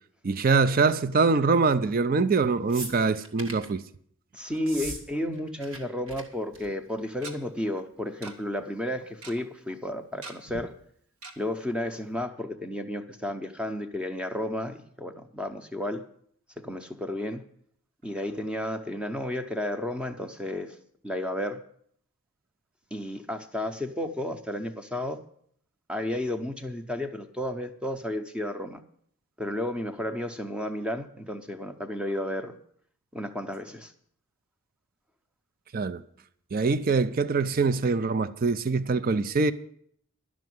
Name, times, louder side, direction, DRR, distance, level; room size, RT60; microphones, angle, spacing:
voice 1, 0.2-3.8 35.7-36.0 36.5-39.5, right 4 dB, 40° right, 0.4 m, -24 dB
sound 1, 2.7-3.7 4.6-5.0 5.3-5.8 6.1-6.2 6.5-6.8 7.8-7.9, right 2 dB, 65° right, 1.9 m, -39 dB
voice 2, 4.3-10.7 11.4-16.1 16.6-17.5 18.0-20.8 21.0-21.6 22.9-25.2 25.9-28.8 29.4-32.6 33.1-33.9, left 1 dB, 5° right, 0.7 m, -32 dB
Tick-tock, 6.3-6.4 7.2-7.3 8.2-8.3 8.6-8.7 8.9-9.3 10.2-10.6 11.2-11.3 11.8-11.9 12.2-12.3, right 3 dB, 85° right, 1.5 m, -42 dB
12.0 x 6.2 x 9.3 m
head